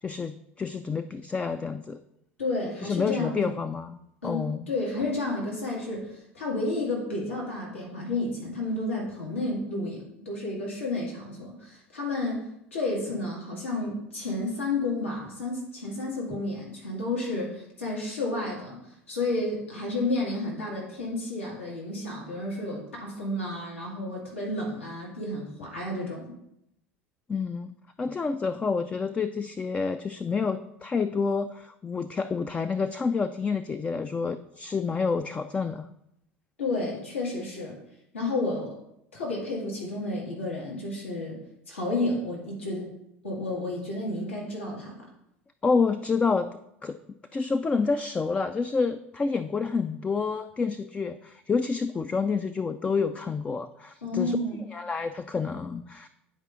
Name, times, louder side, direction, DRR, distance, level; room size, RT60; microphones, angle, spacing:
voice 1, 0.0-2.0 2.8-4.0 4.2-4.7 16.3-16.4 27.3-27.7 28.0-35.9 45.6-46.5 46.8-54.4 54.7-56.1, left 5 dB, 20° left, 10 dB, 0.3 m, -28 dB
voice 2, 2.4-3.5 4.2-26.3 36.6-37.7 38.1-38.8 39.1-41.4 41.7-42.9 43.2-44.9 54.0-54.6, left 2 dB, 80° left, -4 dB, 2.0 m, -31 dB
9.4 x 4.7 x 3.7 m, 0.81 s
figure-of-eight pair, 70°, 7 cm